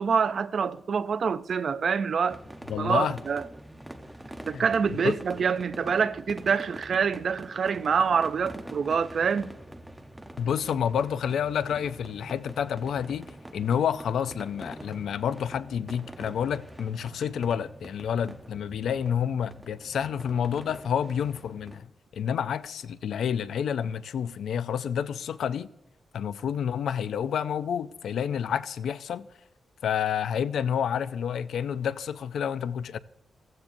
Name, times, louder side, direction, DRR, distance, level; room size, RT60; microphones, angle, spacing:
voice 1, 0.0-2.4 2.8-3.4 4.4-9.5, right 6 dB, 50° right, 0.4 m, -26 dB
sound 1, 2.3-21.8, right 1 dB, 5° right, 0.8 m, -45 dB
voice 2, 2.7-3.2 4.5-5.2 10.4-25.7 26.1-29.3 29.8-33.0, left 8 dB, 90° left, 0.4 m, -29 dB
15.5 x 15.0 x 2.6 m
wide cardioid pair, 160°, 0 cm